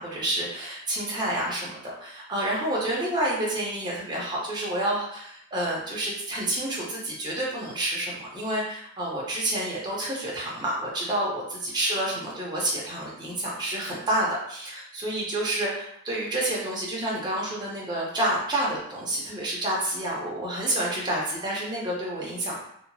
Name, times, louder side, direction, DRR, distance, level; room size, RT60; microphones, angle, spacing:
voice 1, 0.0-22.6, right 1 dB, 20° right, -4 dB, 0.7 m, -29 dB
2.8 x 2.4 x 2.6 m, 0.71 s
head